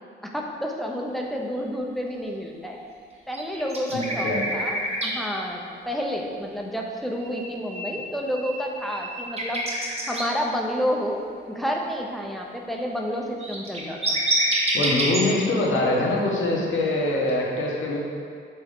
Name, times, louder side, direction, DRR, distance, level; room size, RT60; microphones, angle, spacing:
voice 1, 0.3-2.8 3.3-9.6 10.1-14.2, equal, ahead, 0 dB, 0.7 m, -30 dB
sound 1, 3.3-5.1 7.1-10.2 13.1-13.2 13.4-15.2 17.3-17.4, right 1 dB, 30° right, 1.0 m, -27 dB
voice 2, 3.9-4.4 14.7-18.0, left 2 dB, 85° left, -3 dB, 1.2 m, -24 dB
7.0 x 4.5 x 3.6 m, 2.1 s
wide cardioid pair, 130°, 20 cm